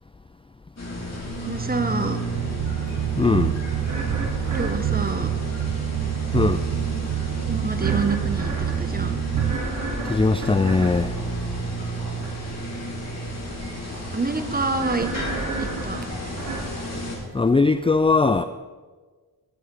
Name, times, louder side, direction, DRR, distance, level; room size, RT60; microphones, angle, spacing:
sound 1, 0.8-17.1, right 1 dB, 40° left, 4.4 m, -33 dB
voice 1, 1.5-2.2 4.5-5.3 7.0-7.1 7.5-8.5 8.8-9.2 14.1-15.1 15.6-16.0, right 3 dB, 25° right, 8 dB, 1.5 m, -27 dB
sound 2, 1.5-17.4, right 2 dB, 50° right, 4.1 m, -35 dB
sound 3, 2.3-9.6, right 11 dB, 85° right, 0.7 m, -26 dB
voice 2, 3.2-3.5 6.3-6.6 10.0-11.2 17.3-18.4, left 3 dB, 15° left, 11 dB, 0.5 m, -20 dB
19.0 x 7.8 x 5.0 m, 1.4 s
cardioid pair, 60°, 39 cm